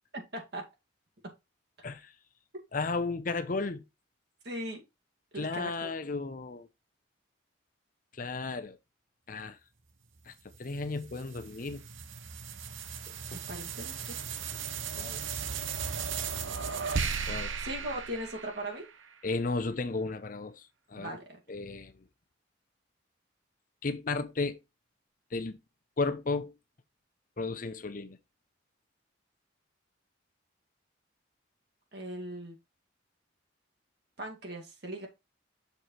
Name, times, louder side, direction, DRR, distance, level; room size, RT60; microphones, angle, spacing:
voice 1, 0.1-0.7 4.4-4.8 5.3-5.9 13.3-14.2 17.6-18.8 21.0-21.4 31.9-32.6 34.2-35.1, right 1 dB, 55° right, 2.3 m, -39 dB
voice 2, 1.8-2.1 2.7-3.8 5.4-6.7 8.1-8.8 9.3-9.6 10.3-10.4 10.6-11.8 13.3-13.4 15.0-15.2 17.3-17.5 19.2-21.2 21.5-22.1 23.8-24.6 25.3-25.6 26.0-26.5 27.4-28.2, left 3 dB, 45° left, 0.6 m, -34 dB
sound 1, 10.5-19.1, right 6 dB, 80° right, 0.8 m, -36 dB
6.7 x 4.5 x 4.4 m
head